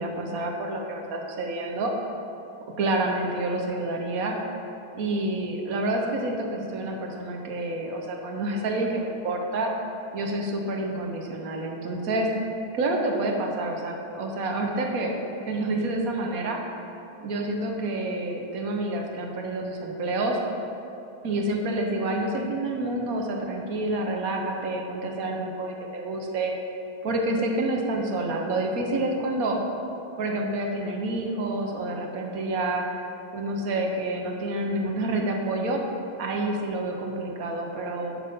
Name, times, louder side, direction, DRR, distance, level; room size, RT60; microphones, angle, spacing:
voice 1, 0.0-1.9 2.8-4.4 4.9-9.7 10.1-12.3 12.7-15.2 15.4-16.6 17.2-20.4 21.2-26.5 27.0-29.6 30.2-32.8 33.3-35.8 36.2-38.2, right 2 dB, 60° right, 1 dB, 1.0 m, -28 dB
7.6 x 5.8 x 5.4 m, 2.8 s
omnidirectional pair, 2.3 m